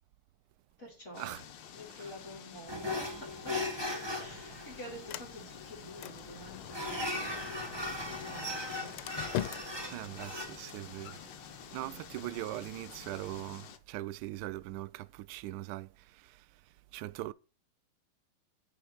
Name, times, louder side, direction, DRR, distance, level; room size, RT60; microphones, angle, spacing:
voice 1, 0.8-1.4 1.7-3.9 4.2-7.8 8.2-9.0 9.8-10.2 11.8-12.0, equal, 35° left, 2.8 m, -49 dB
sound 1, 1.1-13.8, left 9 dB, 65° left, 1.5 m, -50 dB
sound 2, 2.7-13.5, left 1 dB, 15° right, 1.1 m, -40 dB
Sliding door, 3.8-13.8, left 13 dB, 90° left, 1.5 m, -45 dB
voice 2, 9.9-11.2 11.7-17.3, right 16 dB, 80° right, 0.9 m, -41 dB
9.3 x 3.4 x 6.4 m
omnidirectional pair, 2.3 m